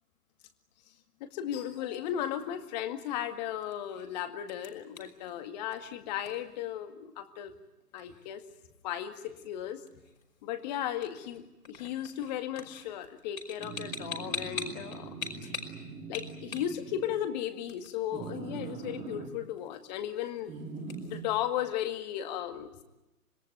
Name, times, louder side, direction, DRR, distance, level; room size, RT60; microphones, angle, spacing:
voice 1, 1.2-7.5 7.9-8.5 8.8-9.8 10.4-15.3 16.1-20.5 21.0-22.8, left 11 dB, 25° left, 8 dB, 2.1 m, -35 dB
sound 1, 1.8-21.2, left 4 dB, 60° left, 5.4 m, -46 dB
sound 2, 13.6-17.2 18.1-19.3 20.5-21.2, right 5 dB, 15° right, 2.1 m, -42 dB
26.0 x 21.5 x 9.3 m, 0.98 s
figure-of-eight pair, 130°, 46 cm